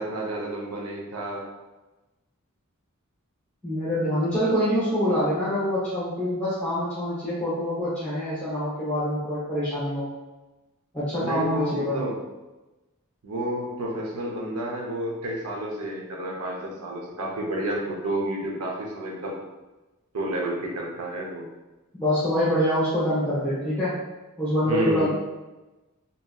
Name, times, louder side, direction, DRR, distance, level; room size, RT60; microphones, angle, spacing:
voice 1, 0.0-1.4 11.2-12.2 13.2-19.4 20.1-21.5 24.6-25.1, right 1 dB, 80° right, -1 dB, 0.6 m, -30 dB
voice 2, 3.6-10.1 10.9-12.0 21.9-24.0 24.4-25.1, equal, 5° left, -12 dB, 0.7 m, -25 dB
2.8 x 2.6 x 2.2 m, 1.1 s
head